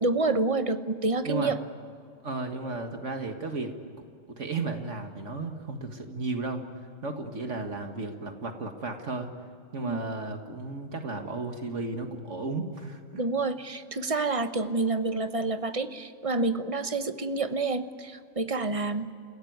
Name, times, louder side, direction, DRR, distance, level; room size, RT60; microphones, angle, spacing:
voice 1, 0.0-1.6 9.8-10.0 13.1-19.1, right 3 dB, 30° right, 10 dB, 1.0 m, -28 dB
voice 2, 2.2-3.7 4.3-6.6 7.0-9.3 9.7-13.2, right 3 dB, 70° right, 5 dB, 2.1 m, -34 dB
29.0 x 16.5 x 9.5 m, 2.4 s
omnidirectional pair, 1.3 m